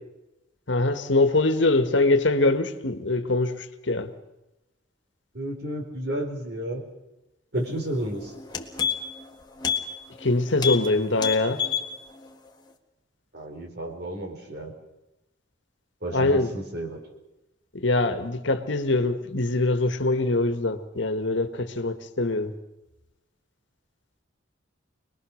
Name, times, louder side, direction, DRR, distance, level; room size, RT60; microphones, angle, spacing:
voice 1, 0.7-4.1 10.2-11.6 16.1-16.6 17.7-22.5, left 2 dB, 75° left, 9 dB, 1.6 m, -23 dB
voice 2, 5.3-6.8 7.5-8.3 13.3-14.7 16.0-17.0, right 1 dB, 55° right, 2 dB, 4.5 m, -32 dB
sound 1, 7.9-8.0 8.4-9.2 9.6-9.8 10.1-10.3 10.6-10.9 11.1-11.9 12.3-12.4, left 7 dB, 20° left, 1.7 m, -27 dB
25.0 x 20.5 x 6.5 m, 0.96 s
head